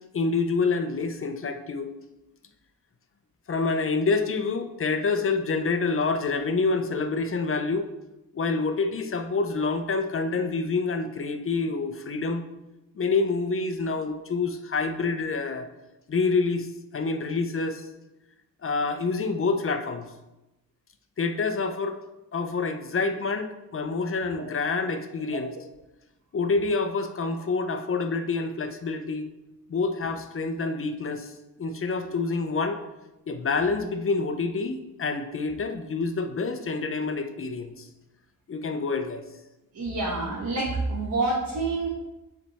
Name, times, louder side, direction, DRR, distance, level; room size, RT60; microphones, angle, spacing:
voice 1, 0.1-1.9 3.5-7.9 8.3-12.5 12.9-15.7 16.1-17.9 18.6-20.1 21.2-22.0 22.3-25.5 26.3-29.2 29.7-31.3 31.6-32.8 33.3-37.9 38.5-39.2, left 4 dB, 40° left, 7 dB, 0.6 m, -27 dB
voice 2, 39.7-41.9, right 3 dB, 60° right, -3 dB, 1.1 m, -27 dB
7.2 x 3.4 x 4.1 m, 0.99 s
wide cardioid pair, 130°, 34 cm